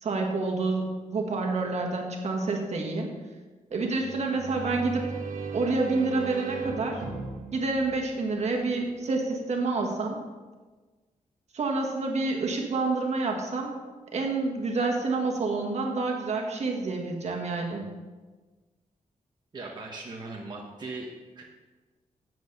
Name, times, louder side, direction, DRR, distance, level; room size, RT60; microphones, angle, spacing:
voice 1, 0.0-3.1 3.7-5.0 5.5-7.0 7.5-10.2 11.5-13.9 14.1-17.9, right 3 dB, 55° right, 1 dB, 1.8 m, -28 dB
sound 1, 3.9-8.7, right 5 dB, 90° right, 1.6 m, -36 dB
voice 2, 19.5-21.4, right 3 dB, 35° right, -3 dB, 1.3 m, -39 dB
9.4 x 7.8 x 5.4 m, 1.3 s
wide cardioid pair, 135°, 14 cm